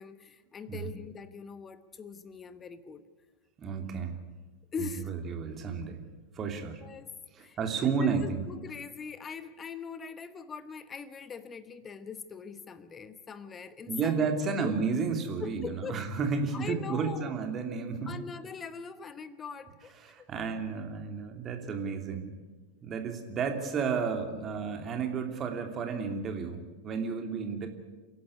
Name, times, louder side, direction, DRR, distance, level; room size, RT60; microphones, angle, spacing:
voice 1, 0.0-3.0 4.7-5.1 6.8-7.1 7.4-14.2 14.6-14.8 15.4-16.1 16.5-17.2 18.0-19.9 20.2-20.3, left 5 dB, 20° left, 14 dB, 1.1 m, -42 dB
voice 2, 3.6-4.1 4.8-6.0 6.3-6.8 7.3-8.4 13.9-18.1 20.0-22.3 22.8-27.7, right 5 dB, 25° right, 5 dB, 2.9 m, -32 dB
28.5 x 11.5 x 9.8 m, 1.3 s
figure-of-eight pair, 90°, 0 cm